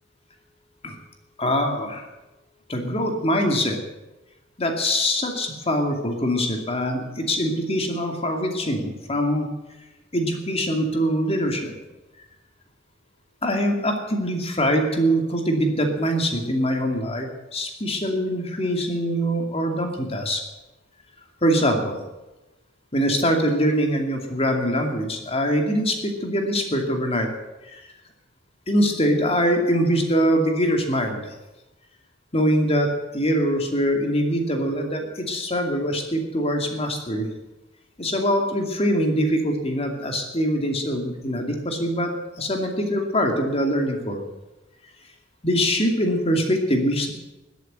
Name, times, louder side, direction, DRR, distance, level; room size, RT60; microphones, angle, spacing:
voice 1, 1.4-2.1 2.7-3.8 4.6-9.5 10.1-11.7 13.4-20.4 21.4-22.0 22.9-27.3 27.7-27.8 28.7-31.3 32.3-37.3 38.0-42.1 42.4-44.2 45.4-47.1, equal, 30° left, 3 dB, 2.5 m, -23 dB
20.5 x 8.3 x 8.2 m, 1.0 s
head